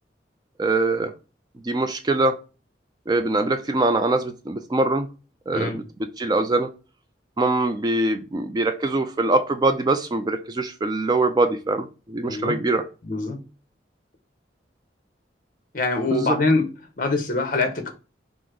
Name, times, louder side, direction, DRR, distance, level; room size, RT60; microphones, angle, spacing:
voice 1, 0.6-1.1 1.6-2.4 3.1-5.1 5.5-5.8 6.2-6.7 7.4-12.8 16.1-16.4, right 2 dB, 20° right, 0.3 m, -23 dB
voice 2, 13.0-13.4 15.7-16.7 17.0-17.9, left 3 dB, 50° left, 0.9 m, -23 dB
5.9 x 2.0 x 3.7 m
head